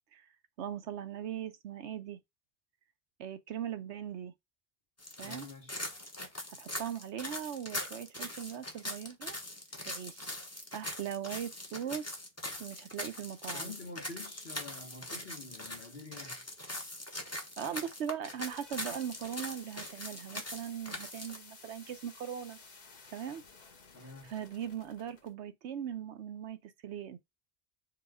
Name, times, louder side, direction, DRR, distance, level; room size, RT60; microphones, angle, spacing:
voice 1, 0.6-2.2 3.2-4.3 5.2-5.5 6.5-9.4 9.9-10.3 10.7-12.1 12.6-13.7 17.6-22.6 23.1-23.4 24.3-27.2, right 9 dB, 85° right, 1.0 m, -40 dB
sound 1, 5.0-21.4, left 1 dB, 15° left, 0.9 m, -42 dB
voice 2, 5.2-5.8 8.9-9.0 13.5-16.5 23.9-24.3, left 3 dB, 60° left, 1.6 m, -48 dB
sound 2, 18.2-25.3, left 4 dB, 45° left, 1.0 m, -55 dB
4.6 x 2.4 x 4.9 m
omnidirectional pair, 1.1 m